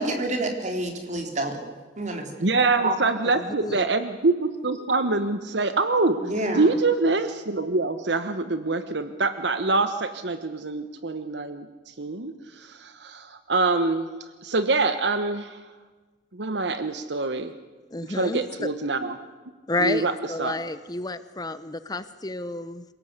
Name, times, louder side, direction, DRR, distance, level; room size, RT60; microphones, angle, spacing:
voice 1, 0.0-1.5 2.0-2.2 2.8-2.9 6.3-6.6, right 2 dB, 40° right, 4 dB, 3.8 m, -27 dB
voice 2, 2.4-6.2 6.5-15.6 16.3-17.5 18.1-19.2 19.8-20.1 20.4-20.6, right 3 dB, 65° right, 10 dB, 1.2 m, -25 dB
voice 3, 3.4-3.8 17.9-18.4 19.7-22.8, left 2 dB, 20° left, 13 dB, 0.8 m, -30 dB
27.0 x 18.0 x 8.3 m, 1.3 s
head